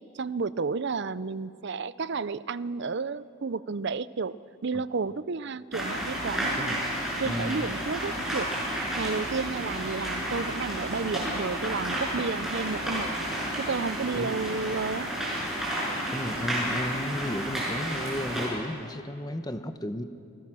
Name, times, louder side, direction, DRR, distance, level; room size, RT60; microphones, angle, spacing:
voice 1, 0.2-4.3 4.6-6.8 7.2-8.5 9.0-13.1 13.6-15.1, right 4 dB, 50° right, 16 dB, 0.5 m, -31 dB
sound 1, 5.7-18.5, right 1 dB, ahead, 7.2 m, -31 dB
voice 2, 7.2-7.7 14.1-14.4 16.1-20.0, left 1 dB, 20° left, 9 dB, 0.9 m, -34 dB
29.0 x 21.0 x 6.2 m, 2.4 s
head